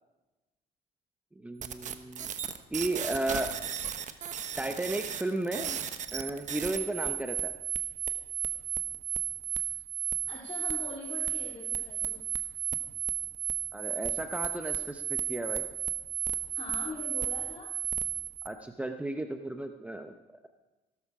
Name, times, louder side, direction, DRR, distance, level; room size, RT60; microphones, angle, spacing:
voice 1, 1.3-2.3 2.7-3.6 4.6-5.8 6.1-7.5 13.7-15.6 18.4-20.2, right 2 dB, 10° right, 6 dB, 0.8 m, -34 dB
sound 1, 1.6-18.5, right 10 dB, 45° right, 1.1 m, -34 dB
voice 2, 10.2-12.2 16.5-17.7, left 4 dB, 35° left, -3 dB, 2.5 m, -42 dB
16.5 x 13.0 x 4.9 m, 1.1 s
cardioid pair, 110°, 17 cm